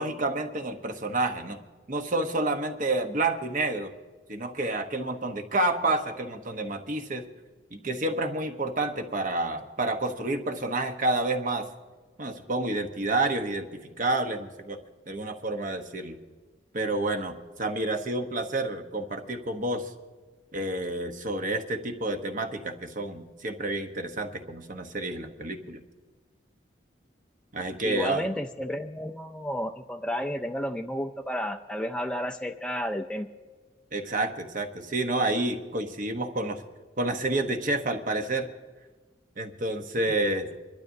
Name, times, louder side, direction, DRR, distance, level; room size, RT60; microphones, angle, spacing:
voice 1, 0.0-1.6 1.9-3.9 4.3-7.3 7.7-11.7 12.2-14.8 15.1-16.2 16.7-19.9 20.5-25.8 27.5-28.3 33.9-36.6 37.0-38.5 39.4-40.5, right 2 dB, 45° right, 6 dB, 0.9 m, -29 dB
voice 2, 27.8-33.3, equal, 5° left, 4 dB, 0.4 m, -32 dB
26.5 x 12.0 x 2.7 m, 1.3 s
head